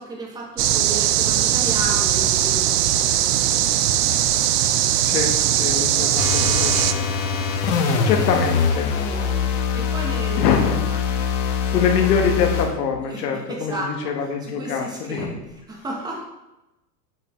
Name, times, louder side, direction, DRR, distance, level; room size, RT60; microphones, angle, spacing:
voice 1, 0.0-3.8 5.5-7.1 7.8-8.2 8.9-10.5 10.9-11.0 13.0-16.2, right 2 dB, 10° right, -1 dB, 1.0 m, -34 dB
sound 1, 0.6-6.9, right 11 dB, 70° right, 0.7 m, -20 dB
voice 2, 5.0-7.2 8.0-8.9 10.4-10.8 11.1-11.3 11.7-15.3, left 6 dB, 75° left, 2 dB, 1.3 m, -24 dB
sound 2, 6.2-12.7, left 6 dB, 50° left, 1.2 m, -23 dB
8.1 x 6.8 x 3.0 m, 0.98 s
supercardioid pair, 160°, 49 cm